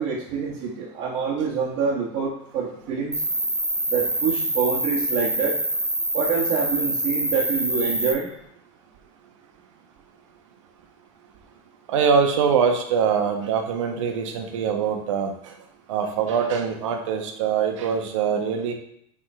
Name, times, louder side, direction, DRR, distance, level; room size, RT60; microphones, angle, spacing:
voice 1, 0.0-3.2 3.9-5.6 6.1-8.3, right 6 dB, 50° right, -6 dB, 1.3 m, -26 dB
Cricket, 3.1-8.1, right 1 dB, 5° right, 0.9 m, -25 dB
voice 2, 11.9-15.3 15.9-18.7, right 6 dB, 90° right, 4 dB, 1.0 m, -23 dB
6.9 x 3.6 x 4.3 m, 0.72 s
supercardioid pair, 135°, 15 cm